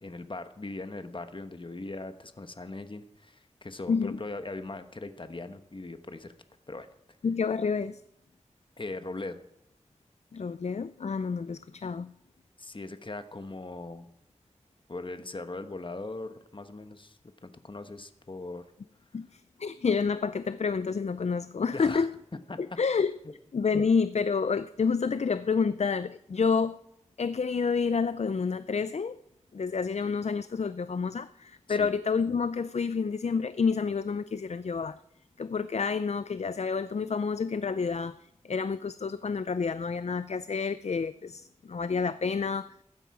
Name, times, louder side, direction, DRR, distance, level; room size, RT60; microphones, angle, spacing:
voice 1, 0.0-6.3 6.7-6.9 8.8-9.4 12.6-14.1 14.9-18.6 21.7-22.1 22.5-22.6 23.2-23.3 31.7-31.9, left 2 dB, 45° left, 9 dB, 1.1 m, -40 dB
voice 2, 3.9-4.2 7.2-8.0 10.3-12.1 19.1-22.1 22.6-23.1 23.5-26.8 27.2-29.2 29.5-35.0 35.4-38.2 38.4-42.7, left 5 dB, 60° left, 14 dB, 0.4 m, -29 dB
15.5 x 12.0 x 4.8 m, 0.78 s
wide cardioid pair, 50°, 12 cm